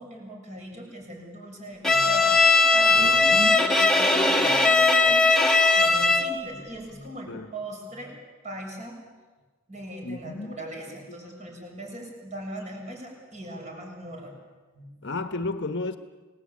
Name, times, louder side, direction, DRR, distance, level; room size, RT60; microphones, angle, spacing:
voice 1, 0.0-5.3 5.7-8.2 8.4-9.0 9.7-14.4 14.7-15.2, right 1 dB, 30° right, 1 dB, 6.9 m, -39 dB
Bowed string instrument, 1.8-6.4, left 3 dB, ahead, 2.1 m, -19 dB
voice 2, 3.0-3.9 7.3-7.5 10.0-10.6 11.1-11.2 15.0-16.0, left 2 dB, 50° left, 8 dB, 1.2 m, -33 dB
29.0 x 19.0 x 8.6 m, 1.3 s
head